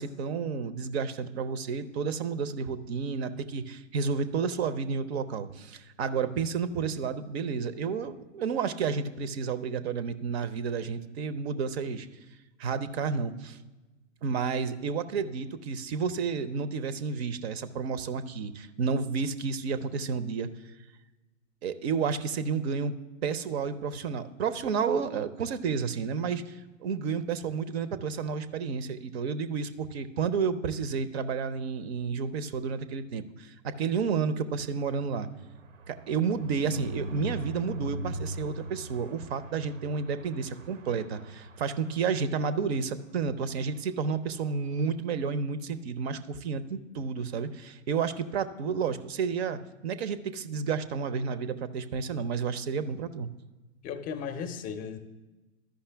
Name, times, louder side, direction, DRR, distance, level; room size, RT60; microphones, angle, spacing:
voice 1, 0.0-12.1 12.6-13.6 14.2-20.5 21.6-23.0 23.2-35.3 35.9-53.3, right 5 dB, 55° right, 14 dB, 0.7 m, -31 dB
sound 1, 33.8-42.6 43.0-43.2 43.5-43.6 43.8-44.1, right 1 dB, 80° right, 0.9 m, -41 dB
voice 2, 53.8-55.0, left 7 dB, 20° left, 9 dB, 0.5 m, -36 dB
13.0 x 5.5 x 3.3 m, 1.1 s
hypercardioid pair, 110°, 38 cm